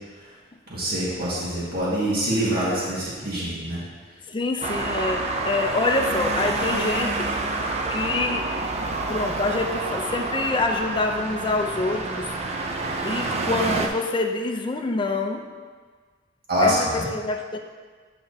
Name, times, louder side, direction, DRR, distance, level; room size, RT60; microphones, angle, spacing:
voice 1, 0.7-3.8 16.5-17.0, equal, 55° right, -7 dB, 1.7 m, -25 dB
voice 2, 4.3-7.4 7.9-8.4 9.1-12.3 13.0-15.5 16.6-17.6, left 3 dB, 25° left, 4 dB, 0.5 m, -26 dB
Traffic noise roadway noise, 4.6-13.9, right 3 dB, 35° right, 0.5 m, -28 dB
8.5 x 5.7 x 2.8 m, 1.5 s
head